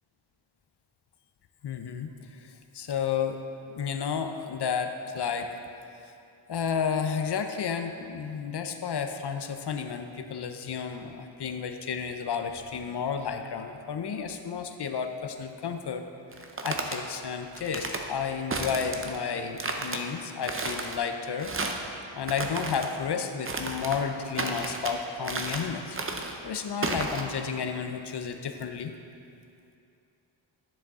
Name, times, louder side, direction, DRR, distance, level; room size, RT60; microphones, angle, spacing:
voice 1, 1.6-3.4 3.8-5.5 6.5-16.0 16.6-21.5 22.1-28.9, left 6 dB, 55° left, 7 dB, 0.6 m, -32 dB
sound 1, 16.3-17.0 17.5-18.0 18.5-19.2 19.6-20.0 20.4-21.0 21.4-21.9 22.2-22.9 23.5-24.0 24.4-24.9 25.2-25.7 25.9-26.4 26.8-27.2, right 3 dB, 30° right, 0.6 m, -32 dB
10.5 x 6.5 x 3.6 m, 2.6 s
wide cardioid pair, 145°, 48 cm